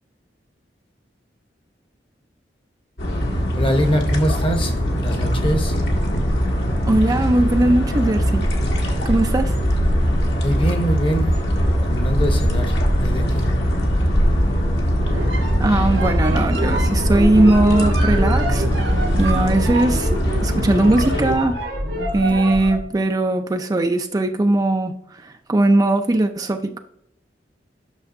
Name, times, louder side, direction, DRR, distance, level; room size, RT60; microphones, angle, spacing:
sound 1, 3.0-21.3, equal, 80° left, 1.5 m, -20 dB
voice 1, 3.5-5.7 10.4-11.3 11.8-12.7 13.0-13.5, equal, 30° left, 0.9 m, -23 dB
voice 2, 6.9-8.5 9.0-9.6 15.0-18.7 19.2-21.6 22.1-26.8, right 2 dB, 20° right, 0.4 m, -19 dB
sound 2, 15.1-22.9, right 1 dB, 90° right, 1.3 m, -27 dB
8.3 x 6.1 x 2.6 m
head